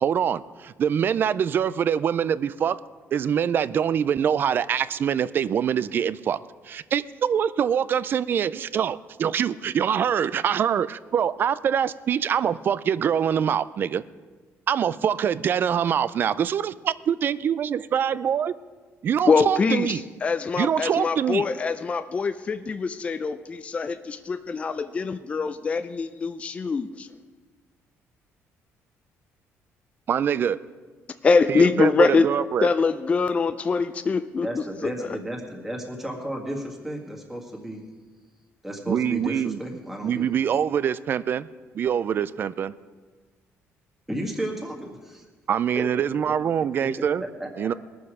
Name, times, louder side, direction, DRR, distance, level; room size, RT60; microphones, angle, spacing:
voice 1, 0.0-2.8 3.1-6.4 6.7-14.0 14.7-18.5 19.0-20.0 20.6-21.5 30.1-30.6 31.5-32.7 38.9-39.6 40.0-41.5 41.7-42.7 45.5-47.2 47.6-47.7, right 8 dB, 40° right, 17 dB, 0.4 m, -24 dB
voice 2, 19.3-27.1 31.2-32.3 32.6-35.2, left 4 dB, 25° left, 10 dB, 0.4 m, -24 dB
voice 3, 34.4-37.8 38.6-40.3 44.1-45.3 45.8-46.3 47.0-47.7, right 1 dB, 5° right, 0 dB, 1.9 m, -33 dB
20.0 x 7.0 x 4.9 m, 1.4 s
cardioid pair, 145°, 5 cm